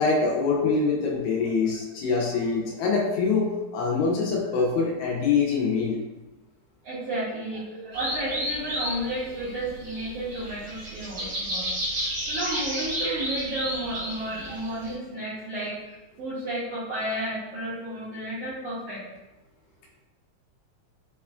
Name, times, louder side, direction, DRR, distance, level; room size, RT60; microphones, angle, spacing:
voice 1, 0.0-6.0, left 4 dB, 80° left, -2 dB, 1.8 m, -24 dB
voice 2, 6.8-11.7 12.0-19.0, right 1 dB, 80° right, -9 dB, 1.4 m, -32 dB
sound 1, 7.9-14.9, equal, 55° right, 1.3 m, -32 dB
4.8 x 2.3 x 2.3 m, 1.1 s
omnidirectional pair, 3.5 m